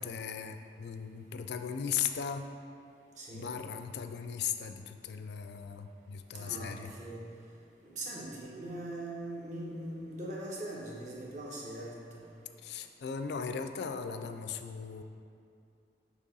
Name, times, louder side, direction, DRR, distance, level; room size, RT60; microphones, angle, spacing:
voice 1, 0.0-2.5 3.3-6.9 12.6-15.0, left 7 dB, 70° left, 8 dB, 0.4 m, -37 dB
voice 2, 3.2-3.6 6.3-7.2 7.8-12.3, right 1 dB, 45° right, -5 dB, 1.1 m, -41 dB
6.5 x 3.0 x 5.4 m, 2.5 s
head